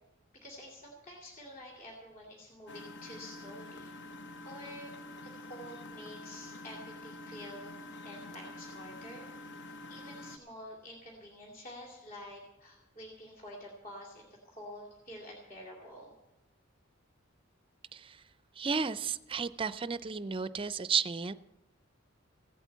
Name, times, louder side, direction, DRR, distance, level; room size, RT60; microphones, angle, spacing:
voice 1, 0.3-3.9 4.4-4.9 5.2-7.8 8.0-9.3 9.9-16.1, left 1 dB, 45° left, -3 dB, 2.5 m, -48 dB
Engine, 2.7-10.4, left 2 dB, 60° left, 0.9 m, -47 dB
voice 2, 17.9-18.2 18.6-21.3, right 5 dB, 25° right, 14 dB, 0.5 m, -33 dB
16.0 x 8.3 x 8.2 m, 0.97 s
head